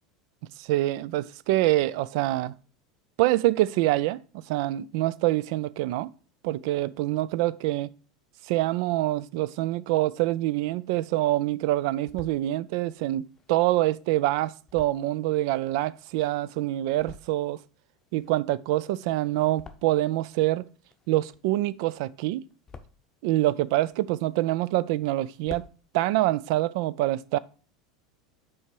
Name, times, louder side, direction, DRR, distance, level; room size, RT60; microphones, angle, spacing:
voice 1, 0.6-2.5 3.2-4.2 4.5-6.1 6.4-7.9 8.5-17.6 18.1-20.7 21.1-22.4 23.2-25.6 25.9-27.4, right 16 dB, 60° right, 0.3 m, -25 dB
sound 1, 10.5-11.2 11.7-12.4 13.1-16.4 16.8-17.6 17.9-20.3 20.6-21.8 22.2-23.2 23.7-24.7 25.0-25.1 25.3-25.8, left 5 dB, 20° left, 0.8 m, -50 dB
7.1 x 4.8 x 4.5 m
figure-of-eight pair, 80°, 3 cm